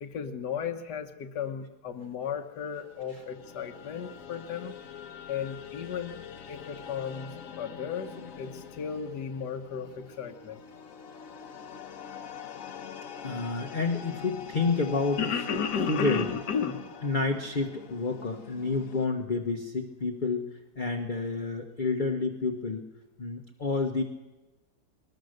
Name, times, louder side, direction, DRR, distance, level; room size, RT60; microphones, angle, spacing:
voice 1, 0.0-4.7 5.3-6.2 6.5-10.6 15.2-16.9, left 7 dB, 70° left, 7 dB, 1.8 m, -34 dB
sound 1, 2.6-19.1, left 7 dB, 55° left, 1.4 m, -44 dB
voice 2, 13.2-15.3 15.9-16.3 17.0-20.4 20.8-22.8 23.2-24.0, left 3 dB, 30° left, 3 dB, 1.1 m, -29 dB
21.5 x 20.0 x 6.6 m, 1.1 s
omnidirectional pair, 1.9 m